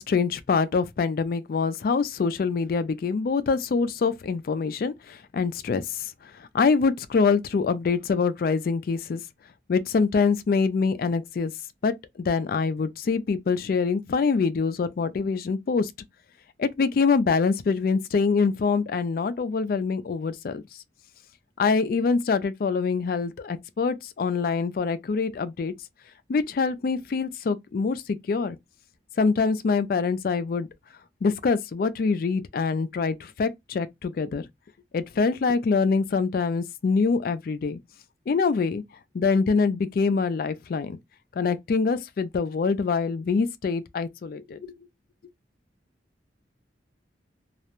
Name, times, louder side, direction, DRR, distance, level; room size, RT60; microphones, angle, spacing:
voice 1, 0.0-9.2 9.7-11.5 11.8-15.9 16.6-20.6 21.6-25.7 26.3-28.6 29.2-30.7 31.2-34.5 34.9-37.8 38.3-38.8 39.1-41.0 41.4-44.7, left 4 dB, 55° left, 0.3 m, -25 dB
2.3 x 2.1 x 2.9 m
head